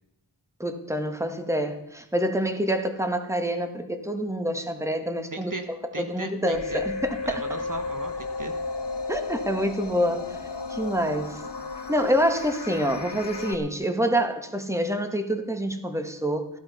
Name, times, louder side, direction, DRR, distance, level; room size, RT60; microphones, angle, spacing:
voice 1, 0.6-5.5 6.0-7.4 9.1-10.3 10.7-11.4 11.9-16.5, equal, 5° right, 7 dB, 1.7 m, -26 dB
voice 2, 5.3-5.7 5.9-6.8 7.2-8.5, right 2 dB, 50° right, 6 dB, 1.4 m, -36 dB
sound 1, 6.5-13.5, left 3 dB, 75° left, 1.8 m, -33 dB
15.5 x 11.5 x 5.6 m, 0.85 s
wide cardioid pair, 45°, 42 cm